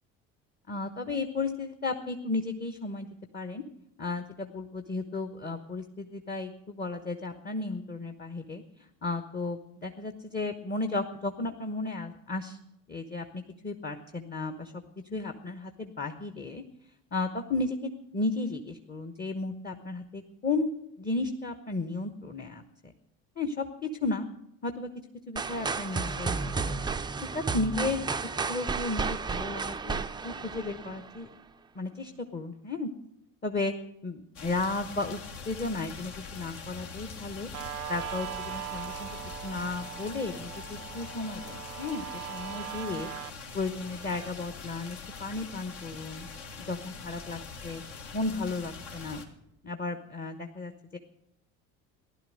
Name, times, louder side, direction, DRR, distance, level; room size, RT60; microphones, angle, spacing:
voice 1, 0.7-3.1 3.3-3.6 4.0-12.6 12.9-14.7 15.1-16.6 17.1-20.7 21.0-22.9 23.4-24.3 24.6-24.9 25.3-26.8 27.2-28.1 28.5-31.3 31.7-32.9 33.4-33.7 34.0-35.2 35.5-37.5 37.9-43.1 43.5-46.3 46.6-47.8 48.1-49.2 49.6-51.0, left 3 dB, 20° left, 7 dB, 1.1 m, -34 dB
sound 1, 25.4-31.3, right 4 dB, 10° right, 0.5 m, -32 dB
sound 2, 34.4-49.3, left 5 dB, 60° left, 2.1 m, -43 dB
Guitar, 37.5-44.5, right 14 dB, 80° right, 0.6 m, -41 dB
15.5 x 11.5 x 6.5 m, 0.77 s
figure-of-eight pair, 65°, 44 cm